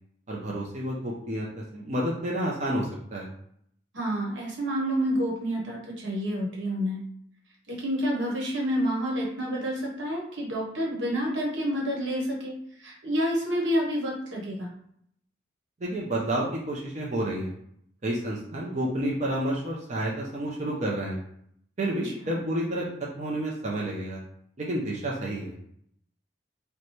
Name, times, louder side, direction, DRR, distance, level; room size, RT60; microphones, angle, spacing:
voice 1, 0.3-3.3 15.8-17.5 18.0-21.2 21.8-22.9 23.2-24.2 24.6-25.6, right 1 dB, 35° right, -3 dB, 0.5 m, -30 dB
voice 2, 3.9-7.0 7.7-14.7 22.0-22.3, equal, 80° right, -2 dB, 1.1 m, -29 dB
3.1 x 2.2 x 4.1 m, 0.69 s
head